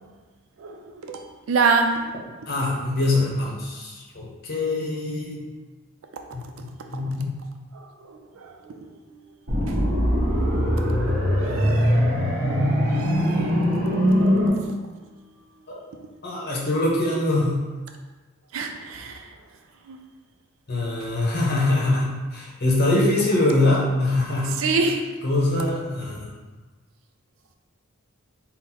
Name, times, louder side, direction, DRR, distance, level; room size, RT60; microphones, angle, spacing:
voice 1, 0.6-1.2 1.5-2.0 8.0-8.7 11.5-12.0 12.5-13.6 14.5-14.6 18.5-19.2 19.9-20.0 24.6-25.0, right 4 dB, 70° right, 4 dB, 0.4 m, -26 dB
voice 2, 2.5-5.4 6.9-7.4 15.7-15.8 16.2-17.6 20.7-24.6 25.2-26.3, left 2 dB, 50° left, -4 dB, 0.8 m, -23 dB
sound 1, 9.5-14.5, equal, 40° right, 1.0 m, -21 dB
3.8 x 2.0 x 4.2 m, 1.3 s
head